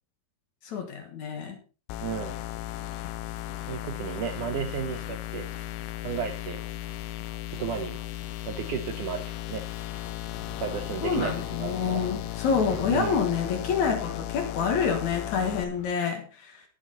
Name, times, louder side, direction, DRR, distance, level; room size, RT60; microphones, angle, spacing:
voice 1, 0.6-1.6 11.0-16.6, left 6 dB, 55° left, 5 dB, 2.5 m, -27 dB
sound 1, 1.9-15.6, left 14 dB, 85° left, 2.8 m, -36 dB
voice 2, 2.0-2.4 3.7-5.7 6.0-6.6 7.5-8.0 8.5-9.6 10.6-12.1 12.9-13.3, right 8 dB, 75° right, 7 dB, 2.0 m, -33 dB
sound 2, 10.3-15.9, left 1 dB, 40° left, 5.1 m, -47 dB
19.0 x 7.2 x 3.8 m, 0.34 s
omnidirectional pair, 4.5 m